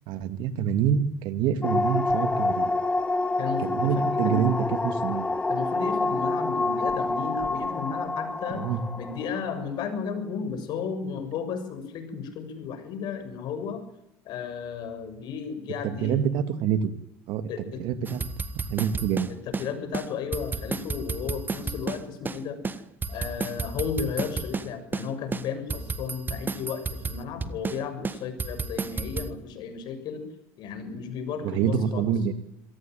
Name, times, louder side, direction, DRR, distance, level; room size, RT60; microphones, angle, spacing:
voice 1, 0.1-2.7 3.6-5.3 8.5-8.8 15.8-16.9 17.3-17.5 17.8-18.2 18.6-19.3 31.4-32.3, right 8 dB, 70° right, 12 dB, 2.3 m, -26 dB
sound 1, 1.6-9.7, left 2 dB, 15° left, 2.2 m, -27 dB
voice 2, 3.4-4.4 5.5-8.6 9.0-13.8 14.3-16.2 17.5-17.8 19.3-22.6 23.1-30.2 30.6-32.1, left 6 dB, 65° left, 8 dB, 7.0 m, -34 dB
sound 2, 18.1-19.7 19.9-20.1 20.3-22.4 22.6-24.7 24.9-25.1 25.3-27.8 28.0-29.3, right 4 dB, 25° right, 1.7 m, -31 dB
26.0 x 18.0 x 9.4 m, 0.80 s
supercardioid pair, 100°, 8 cm